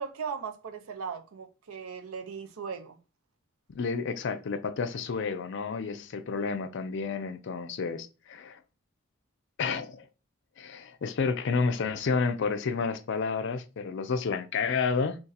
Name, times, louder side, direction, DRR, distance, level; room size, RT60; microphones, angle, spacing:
voice 1, 0.0-3.0, right 6 dB, 75° right, 0.6 m, -38 dB
voice 2, 3.7-8.6 9.6-10.1 10.6-15.2, left 5 dB, 55° left, 0.4 m, -30 dB
2.6 x 2.5 x 3.9 m
head